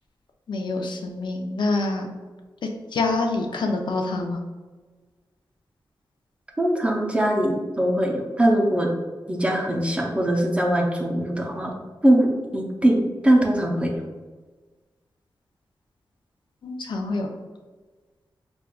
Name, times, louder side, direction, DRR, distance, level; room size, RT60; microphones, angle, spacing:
voice 1, 0.5-2.1 2.9-4.4 16.6-17.3, left 3 dB, 70° left, 3 dB, 0.4 m, -26 dB
voice 2, 6.6-8.9 9.3-11.7 12.0-13.9, right 1 dB, 15° right, 0 dB, 0.5 m, -21 dB
5.0 x 2.3 x 2.3 m, 1.3 s
wide cardioid pair, 165°, 8 cm